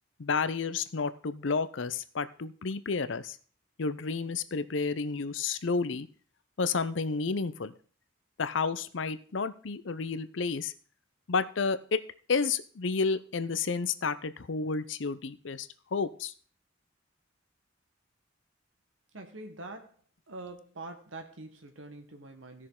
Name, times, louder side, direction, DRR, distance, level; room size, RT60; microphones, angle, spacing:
voice 1, 0.2-3.4 3.8-6.1 6.6-7.7 8.4-10.7 11.3-12.0 12.3-16.3, left 4 dB, 75° left, 13 dB, 0.6 m, -31 dB
voice 2, 19.1-20.0 20.3-22.7, right 2 dB, 80° right, 5 dB, 1.3 m, -44 dB
16.5 x 6.4 x 3.8 m, 0.41 s
head